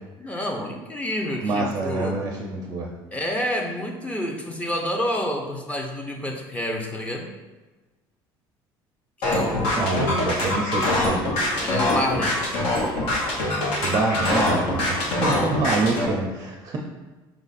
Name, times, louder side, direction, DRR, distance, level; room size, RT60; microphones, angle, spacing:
voice 1, 0.2-2.2 3.1-7.3 9.2-10.1 11.6-12.4, equal, 15° left, 2 dB, 0.6 m, -29 dB
voice 2, 1.4-2.9 9.8-11.3 13.8-16.8, right 3 dB, 35° right, 0 dB, 0.5 m, -26 dB
sound 1, 9.2-16.1, left 1 dB, 75° left, 1.1 m, -23 dB
5.3 x 2.4 x 4.0 m, 1.2 s
cardioid pair, 145°, 9 cm